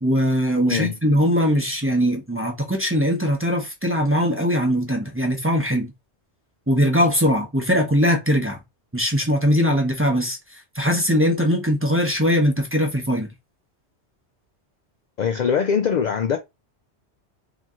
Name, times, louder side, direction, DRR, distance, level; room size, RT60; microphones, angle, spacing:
voice 1, 0.0-5.9 6.7-8.6 8.9-10.4 10.7-13.3, equal, 15° right, 0.8 m, -20 dB
voice 2, 0.7-1.0 15.2-16.4, left 7 dB, 60° left, 0.5 m, -22 dB
3.0 x 2.7 x 3.6 m
omnidirectional pair, 1.1 m